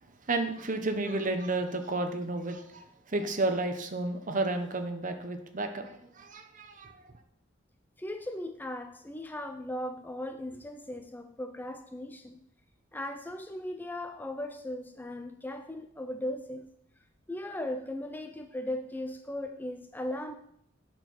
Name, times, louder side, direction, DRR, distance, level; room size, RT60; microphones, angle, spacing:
voice 1, 0.2-7.2, right 2 dB, 40° right, 7 dB, 0.9 m, -32 dB
voice 2, 8.0-12.4 12.9-16.7 17.3-20.3, left 1 dB, 10° left, 6 dB, 0.4 m, -37 dB
8.6 x 4.5 x 6.1 m, 0.71 s
head